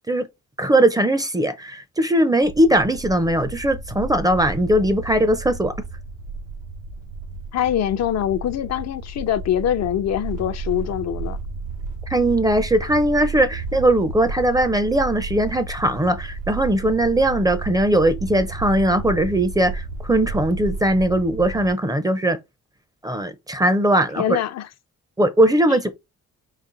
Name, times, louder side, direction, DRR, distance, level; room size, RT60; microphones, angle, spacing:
voice 1, 0.6-5.7 12.1-22.4 23.0-24.2 25.2-25.9, right 1 dB, 10° right, 0.5 m, -19 dB
sound 1, 2.4-21.7, right 3 dB, 85° right, 1.2 m, -33 dB
voice 2, 7.5-11.4 24.2-24.7 25.7-25.8, left 10 dB, 60° left, 0.5 m, -23 dB
4.0 x 2.5 x 3.8 m
cardioid pair, 90°, 30 cm